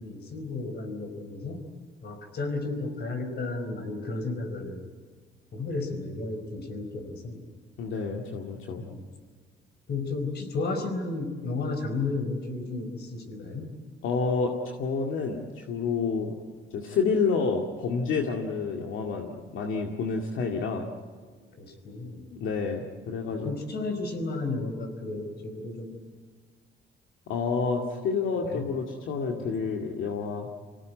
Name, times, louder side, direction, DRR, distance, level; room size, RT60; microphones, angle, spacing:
voice 1, 0.0-1.6 2.0-4.9 5.5-7.4 8.8-9.0 9.9-13.7 21.6-22.3 23.4-26.0 28.4-28.7 29.4-29.5, left 3 dB, 55° left, 7 dB, 4.6 m, -33 dB
voice 2, 7.8-8.8 14.0-16.4 16.7-20.9 22.3-23.5 27.3-30.5, left 5 dB, 80° left, 1 dB, 2.2 m, -29 dB
26.0 x 18.0 x 9.5 m, 1.5 s
cardioid pair, 90°, 20 cm